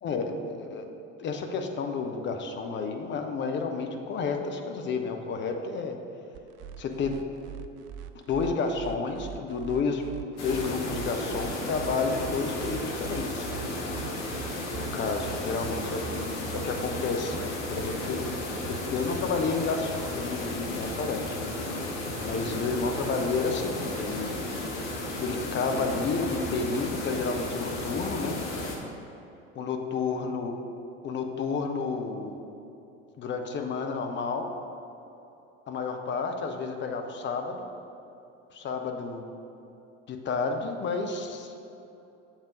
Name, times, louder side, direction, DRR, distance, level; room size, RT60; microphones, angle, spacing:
voice 1, 0.0-0.9 1.2-6.0 6.8-7.2 8.1-10.0 10.4-13.6 14.8-16.3 16.5-18.2 18.6-21.4 22.2-24.4 25.2-28.4 29.5-30.5 31.0-32.4 33.2-34.5 35.7-37.7 38.5-39.3 40.1-41.5, left 4 dB, 30° left, 4 dB, 0.7 m, -31 dB
sound 1, 6.3-23.9, right 12 dB, 45° right, 0.4 m, -43 dB
sound 2, 10.4-28.8, left 2 dB, 50° left, 1.2 m, -34 dB
7.2 x 3.7 x 5.2 m, 2.8 s
figure-of-eight pair, 70°, 36 cm